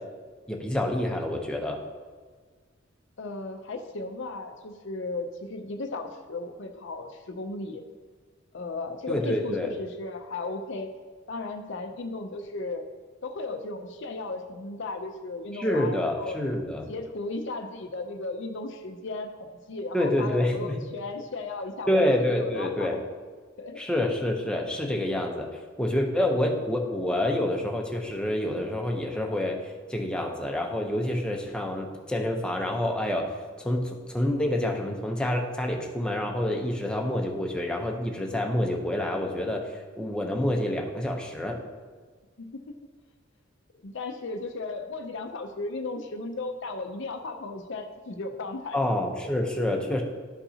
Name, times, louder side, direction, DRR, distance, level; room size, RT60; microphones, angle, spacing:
voice 1, 0.5-1.8 9.1-9.7 15.5-16.9 19.9-20.8 21.9-23.0 23.8-25.5 25.8-33.3 33.6-39.7 40.0-41.6 48.7-50.0, left 1 dB, 5° left, 1 dB, 0.8 m, -27 dB
voice 2, 3.2-7.8 8.5-10.9 11.3-12.8 13.2-16.4 16.9-19.3 19.7-23.0 23.6-23.8 42.4-42.8 43.8-48.8 49.2-49.3, left 3 dB, 65° left, 5 dB, 0.6 m, -35 dB
12.5 x 5.4 x 2.8 m, 1.5 s
head